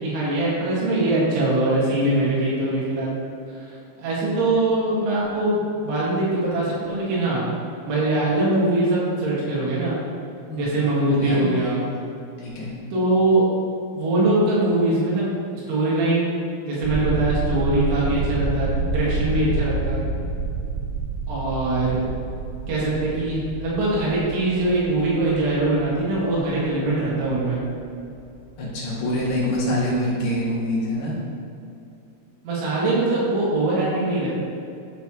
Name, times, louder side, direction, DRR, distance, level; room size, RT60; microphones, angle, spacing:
voice 1, 0.0-3.1 3.7-7.5 7.9-9.9 10.6-11.8 12.9-13.5 13.9-15.3 15.7-16.3 16.6-20.0 21.3-22.0 22.7-27.6 32.4-34.3, right 2 dB, 75° right, -7 dB, 4.2 m, -22 dB
voice 2, 11.1-11.8 12.4-12.7 28.6-31.1, equal, 55° left, -7 dB, 3.4 m, -25 dB
sound 1, 16.8-28.7 29.0-29.3 29.6-29.8, right 3 dB, 90° right, 2.3 m, -29 dB
11.5 x 6.2 x 3.0 m, 2.7 s
omnidirectional pair, 5.6 m